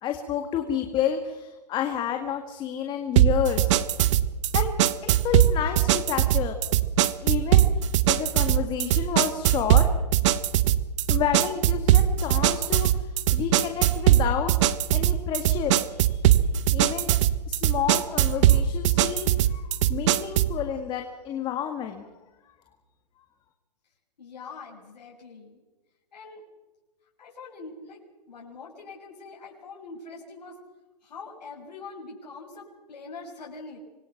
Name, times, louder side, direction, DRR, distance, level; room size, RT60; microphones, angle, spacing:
voice 1, 0.0-3.8 4.5-4.8 5.0-6.6 7.2-9.9 11.1-14.5 14.9-16.3 16.7-17.1 17.5-19.6 19.9-22.0, left 9 dB, 20° left, 5 dB, 1.9 m, -30 dB
sound 1, 3.2-20.6, right 12 dB, 45° right, 1.2 m, -21 dB
voice 2, 24.2-25.6 26.1-26.4 27.2-28.0 28.3-30.6 31.0-33.8, left 4 dB, 80° left, -2 dB, 6.2 m, -43 dB
26.0 x 22.5 x 5.9 m, 1.2 s
hypercardioid pair, 145°, 21 cm